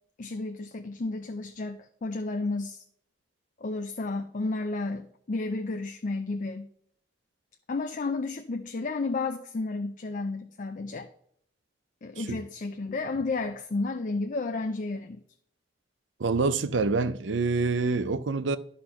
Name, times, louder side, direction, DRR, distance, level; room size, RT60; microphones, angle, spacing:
voice 1, 0.2-2.8 3.6-6.7 7.7-11.1 12.0-15.2, left 3 dB, 45° left, 0.5 m, -32 dB
voice 2, 16.2-18.6, right 4 dB, 85° right, 0.6 m, -26 dB
11.0 x 4.2 x 5.7 m
head